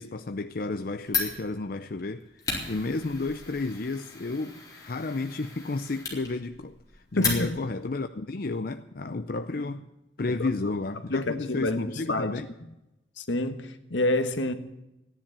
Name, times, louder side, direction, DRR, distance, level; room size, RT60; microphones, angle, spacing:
voice 1, 0.0-9.8 10.2-12.5, left 3 dB, 50° left, 0.6 m, -32 dB
Fire, 1.1-7.9, left 4 dB, 20° left, 4.0 m, -35 dB
voice 2, 7.2-7.5 9.5-9.6 10.3-10.5 11.1-12.3 13.2-14.5, left 2 dB, 80° left, 1.4 m, -28 dB
15.0 x 10.5 x 8.6 m
head